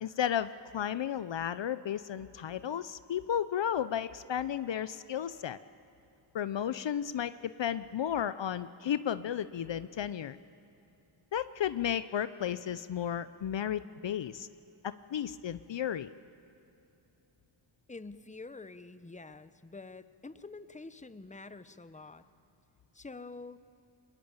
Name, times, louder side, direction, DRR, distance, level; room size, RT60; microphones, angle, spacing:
voice 1, 0.0-5.6 6.3-10.4 11.3-14.5 14.8-16.1, left 9 dB, 65° left, 14 dB, 0.7 m, -33 dB
voice 2, 17.9-22.3 22.9-23.6, left 3 dB, 15° left, 12 dB, 1.0 m, -47 dB
21.5 x 21.0 x 8.9 m, 2.9 s
cardioid pair, 45°, 48 cm